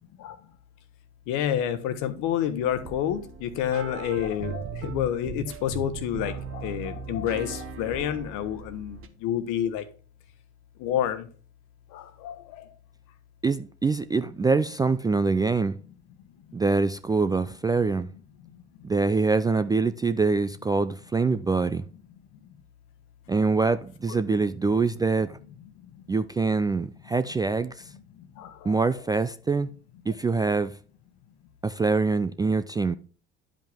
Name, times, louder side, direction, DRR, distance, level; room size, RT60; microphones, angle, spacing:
voice 1, 1.3-9.8 10.8-11.3 11.9-12.7 24.1-24.2 25.9-26.0 28.2-28.8, left 10 dB, 60° left, 1.2 m, -29 dB
sound 1, 2.6-9.1, right 6 dB, 40° right, 1.2 m, -38 dB
voice 2, 13.4-15.8 16.5-18.1 18.8-21.8 23.3-25.4 26.1-27.9 28.6-29.7 30.1-30.7 31.6-32.9, right 4 dB, 10° right, 0.3 m, -24 dB
10.5 x 5.2 x 3.5 m
hypercardioid pair, 60°, 34 cm